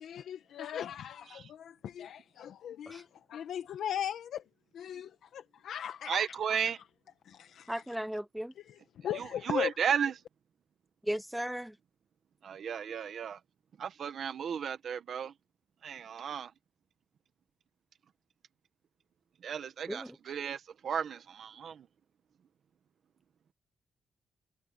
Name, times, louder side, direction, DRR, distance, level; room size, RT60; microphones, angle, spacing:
voice 1, 0.0-4.4 4.7-6.2 7.2-7.8 8.6-9.8, left 10 dB, 80° left, 1.0 m, -38 dB
voice 2, 6.1-6.8 9.1-10.1 12.4-13.4 13.8-15.3 15.8-16.5 19.4-21.9, right 7 dB, 55° right, 1.2 m, -34 dB
voice 3, 7.7-8.5 11.1-11.7 19.9-20.1, equal, 5° right, 0.6 m, -36 dB
wide cardioid pair, 160°, 0 cm